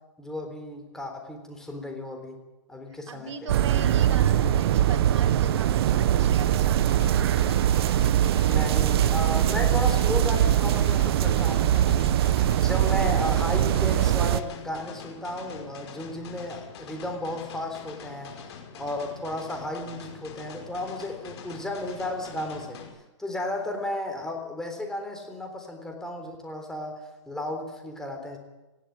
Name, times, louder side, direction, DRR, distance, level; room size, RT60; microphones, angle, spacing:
voice 1, 0.2-2.4 2.7-3.3 8.5-18.3 18.8-22.8 23.2-28.4, left 1 dB, 5° left, 3 dB, 3.7 m, -34 dB
voice 2, 3.1-7.1, right 5 dB, 75° right, 2 dB, 3.6 m, -39 dB
sound 1, 3.5-14.4, right 11 dB, 55° right, 1.0 m, -22 dB
sound 2, 6.9-22.9, left 6 dB, 60° left, 5.6 m, -44 dB
20.0 x 16.0 x 8.8 m, 1.0 s
hypercardioid pair, 150°, 16 cm